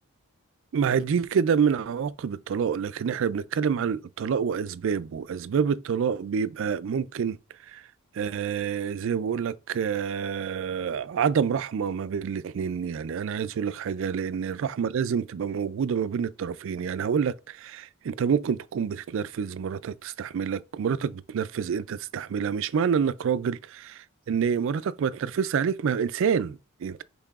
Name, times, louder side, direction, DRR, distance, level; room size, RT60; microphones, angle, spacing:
voice 1, 0.7-7.4 7.7-7.8 8.1-27.0, right 7 dB, 65° right, 0.3 m, -27 dB
5.7 x 3.5 x 2.4 m
head